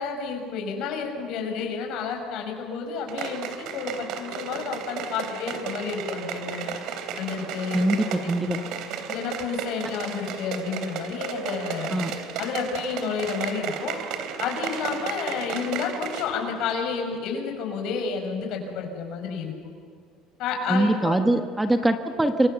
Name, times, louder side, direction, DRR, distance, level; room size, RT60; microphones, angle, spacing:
voice 1, 0.0-6.7 7.2-8.0 8.2-8.3 9.1-12.0 12.4-14.0 14.4-19.5 20.4-21.2, left 5 dB, 65° left, 3 dB, 6.3 m, -30 dB
sound 1, 3.1-16.4 16.7-16.8, right 7 dB, 65° right, 3.2 m, -34 dB
voice 2, 7.7-8.6 11.9-12.1 20.7-22.5, right 1 dB, 10° right, 7 dB, 1.3 m, -22 dB
29.5 x 24.5 x 6.9 m, 2.1 s
cardioid pair, 130°, 0 cm